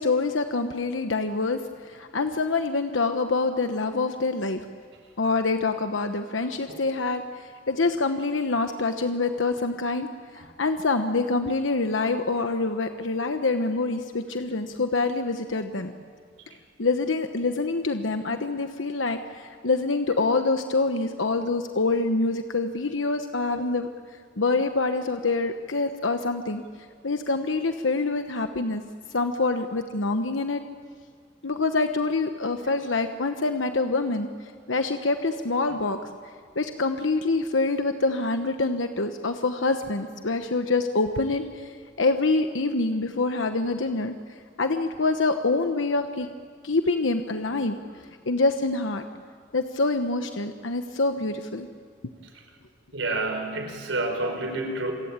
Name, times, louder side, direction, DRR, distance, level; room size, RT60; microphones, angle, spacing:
voice 1, 0.0-4.6 5.2-15.9 16.8-23.9 24.4-26.6 27.0-28.8 29.1-30.6 31.4-34.3 34.7-36.0 36.5-44.1 44.6-46.3 46.6-49.1 49.5-51.7, left 3 dB, 90° left, 7 dB, 1.1 m, -26 dB
voice 2, 52.9-54.9, right 2 dB, 85° right, 5 dB, 4.7 m, -28 dB
27.5 x 23.0 x 8.9 m, 2.2 s
head